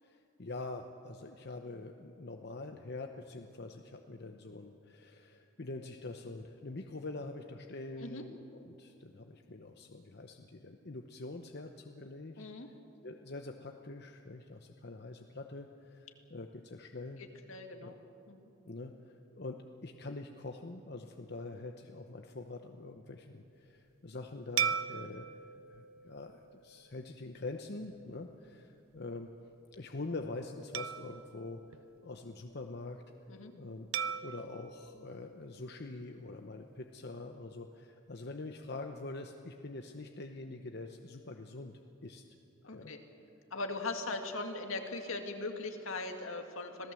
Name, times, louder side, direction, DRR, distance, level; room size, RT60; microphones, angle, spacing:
voice 1, 0.0-12.4 13.0-17.2 17.8-17.9 18.7-33.0 33.5-33.9 34.2-42.2 42.7-42.9, left 2 dB, 50° left, 5 dB, 0.9 m, -45 dB
voice 2, 12.4-12.7 17.5-18.0 18.3-18.5 33.3-33.5 42.6-43.0 43.5-46.9, left 3 dB, 75° left, 4 dB, 2.1 m, -39 dB
sound 1, 24.6-27.2 27.8-28.0 30.7-32.5 33.9-36.2, right 8 dB, 75° right, 0.6 m, -39 dB
26.5 x 17.5 x 7.7 m, 2.8 s
head